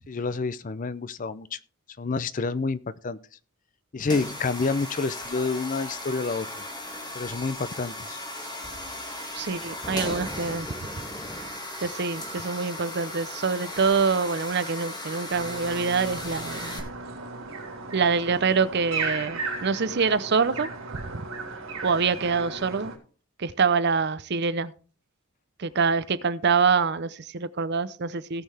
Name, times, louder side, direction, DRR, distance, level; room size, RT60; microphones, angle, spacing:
voice 1, 0.1-1.6 2.0-3.2 3.9-6.5 7.1-8.2, left 4 dB, 35° left, 0.5 m, -28 dB
sound 1, 4.0-16.8, left 1 dB, 20° left, 1.9 m, -37 dB
voice 2, 9.3-10.7 11.8-16.8 17.9-21.2 21.8-22.9 23.4-24.7 25.6-28.4, right 5 dB, 50° right, 0.6 m, -25 dB
sound 2, 15.3-23.0, right 3 dB, 75° right, 3.3 m, -36 dB
18.0 x 6.5 x 3.4 m
head